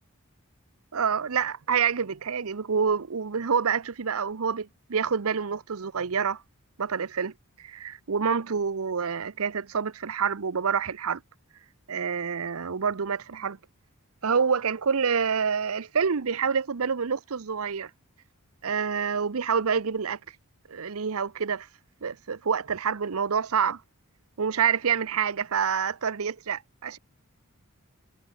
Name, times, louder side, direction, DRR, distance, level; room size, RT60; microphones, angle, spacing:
voice 1, 0.9-6.4 6.8-7.3 7.6-11.2 11.9-13.6 14.2-17.9 18.6-20.2 20.7-21.7 22.0-23.8 24.4-27.0, right 6 dB, 70° right, 0.7 m, -27 dB
head